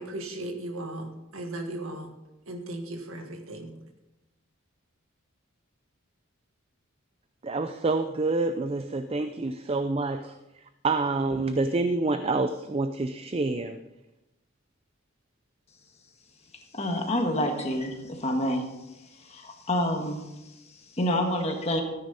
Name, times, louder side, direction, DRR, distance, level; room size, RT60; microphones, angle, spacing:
voice 1, 0.0-2.2 2.5-3.8, right 1 dB, 80° right, 5 dB, 1.7 m, -37 dB
voice 2, 7.4-10.4 10.8-13.8, right 3 dB, 25° right, 9 dB, 0.4 m, -27 dB
voice 3, 16.7-18.6 19.1-21.8, left 1 dB, 30° left, 3 dB, 1.6 m, -28 dB
14.0 x 9.5 x 4.1 m, 0.95 s
head